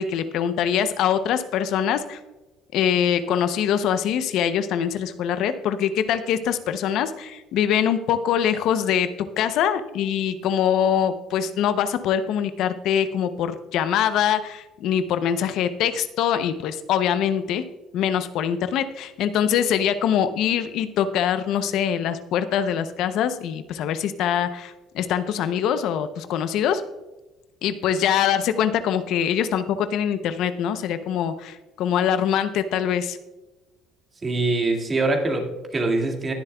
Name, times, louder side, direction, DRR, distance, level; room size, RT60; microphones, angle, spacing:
voice 1, 0.0-2.2 2.7-9.1 9.4-17.6 17.9-26.8 27.6-33.2, left 9 dB, 70° left, 11 dB, 0.6 m, -23 dB
voice 2, 34.2-36.3, right 2 dB, 30° right, 2 dB, 2.1 m, -23 dB
20.5 x 7.2 x 2.3 m, 1.1 s
cardioid pair, 100°, 0 cm